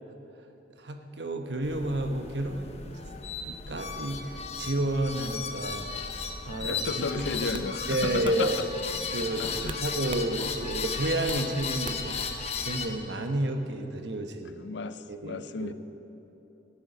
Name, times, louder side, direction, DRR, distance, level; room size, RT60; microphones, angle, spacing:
voice 1, 0.8-3.0 3.4-5.9 6.4-7.6 7.9-8.6 8.9-12.2 12.6-14.6 15.1-15.7, right 1 dB, 65° right, 6 dB, 1.2 m, -31 dB
sound 1, 1.6-12.9, left 5 dB, 35° left, 0.9 m, -35 dB
voice 2, 6.6-8.5 9.4-9.8 14.6-15.7, left 4 dB, 70° left, 12 dB, 0.6 m, -34 dB
sound 2, 6.7-7.0 7.5-7.7 8.2-8.4 9.7-10.3 10.7-11.5 11.8-12.2, right 4 dB, 30° right, 0.4 m, -41 dB
sound 3, 7.1-8.7, left 1 dB, 10° left, 2.8 m, -47 dB
15.5 x 7.2 x 9.3 m, 3.0 s
head